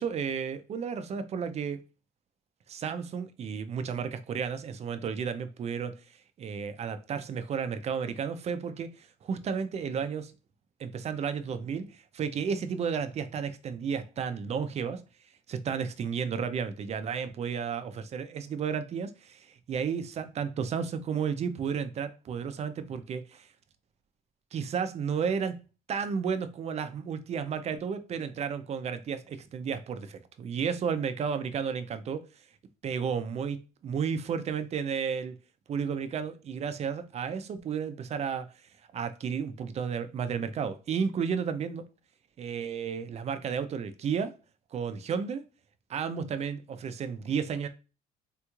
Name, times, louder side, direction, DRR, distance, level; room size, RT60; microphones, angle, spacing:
voice 1, 0.0-1.8 2.7-5.9 6.4-10.3 10.8-15.0 15.5-23.5 24.5-25.6 25.9-32.2 32.8-35.3 35.7-38.5 38.9-41.8 42.4-44.3 44.7-45.4 45.9-47.7, right 6 dB, 40° right, 0.4 m, -32 dB
3.5 x 3.0 x 2.3 m
cardioid pair, 110°, 17 cm